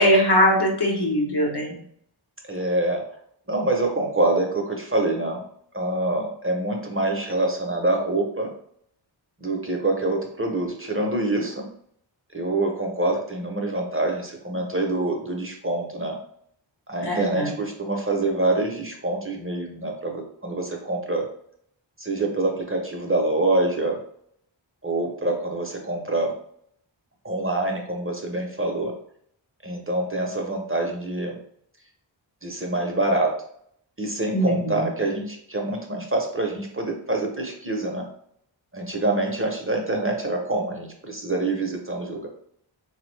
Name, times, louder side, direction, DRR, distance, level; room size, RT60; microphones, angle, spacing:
voice 1, 0.0-1.7 17.0-17.5 34.3-34.9, equal, 55° left, 0 dB, 0.9 m, -21 dB
voice 2, 2.5-3.0 3.5-5.4 5.7-8.5 9.4-11.7 12.3-16.1 16.9-21.2 22.0-24.0 24.8-26.3 27.2-28.9 29.6-31.4 32.4-33.3 34.0-38.0 38.7-42.3, right 2 dB, 30° right, 1 dB, 0.5 m, -25 dB
3.6 x 2.0 x 3.1 m, 0.67 s
wide cardioid pair, 65°, 47 cm